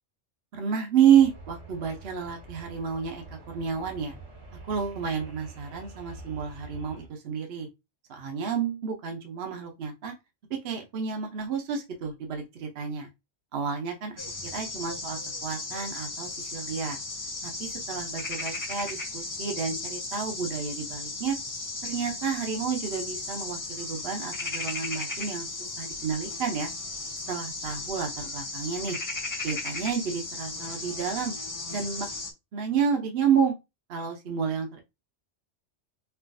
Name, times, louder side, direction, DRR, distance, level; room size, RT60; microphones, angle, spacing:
voice 1, 0.5-4.2 4.7-7.7 8.1-10.1 10.6-13.1 13.5-14.1 14.5-17.0 17.4-21.3 21.8-26.7 27.3-29.0 29.4-31.3 31.7-32.1 32.5-33.5 33.9-34.8, right 7 dB, 60° right, 2 dB, 0.9 m, -29 dB
sound 1, 1.1-7.1, right 2 dB, 80° right, 1.5 m, -46 dB
sound 2, 14.2-32.3, left 3 dB, 30° left, 0.4 m, -36 dB
4.5 x 2.4 x 2.5 m, 0.23 s
omnidirectional pair, 1.2 m